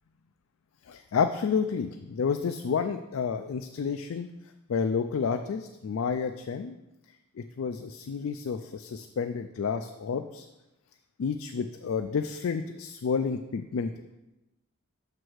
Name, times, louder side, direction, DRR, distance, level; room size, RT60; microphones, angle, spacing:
voice 1, 0.9-4.3 4.7-6.8 7.4-10.5 11.2-13.9, left 6 dB, 70° left, 7 dB, 0.3 m, -30 dB
6.1 x 4.7 x 6.4 m, 1.0 s
head